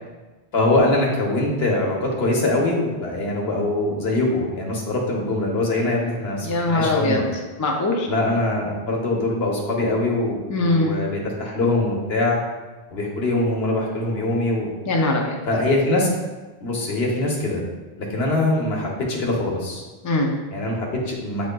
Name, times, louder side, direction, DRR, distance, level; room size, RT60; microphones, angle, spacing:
voice 1, 0.5-7.2 8.0-12.4 12.9-14.7 15.5-16.1 16.6-17.6 18.0-19.8 20.5-21.5, left 2 dB, 75° left, -1 dB, 1.1 m, -23 dB
voice 2, 6.4-7.2 7.6-8.1 10.5-11.0 14.9-15.4 20.0-20.4, left 2 dB, 30° left, 0 dB, 0.3 m, -21 dB
7.3 x 3.0 x 2.2 m, 1.2 s
omnidirectional pair, 1.0 m